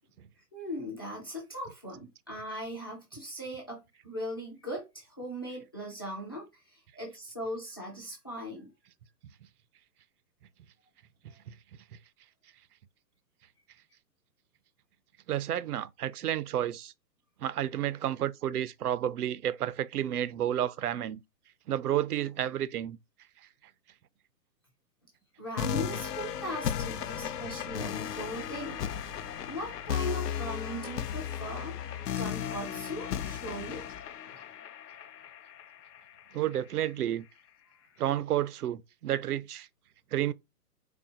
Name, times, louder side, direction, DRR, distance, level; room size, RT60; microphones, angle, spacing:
voice 1, 0.5-8.7 25.4-28.8 29.5-31.7 32.2-33.9 34.3-34.5, equal, 15° left, 0.4 m, -39 dB
voice 2, 15.3-16.9 17.4-21.2 21.7-23.0 26.9-27.0 36.3-37.3 38.0-39.7 40.1-40.3, right 11 dB, 70° right, 0.6 m, -31 dB
sound 1, 25.6-36.5, left 9 dB, 75° left, 0.6 m, -35 dB
4.3 x 2.3 x 2.7 m
hypercardioid pair, 130°, 48 cm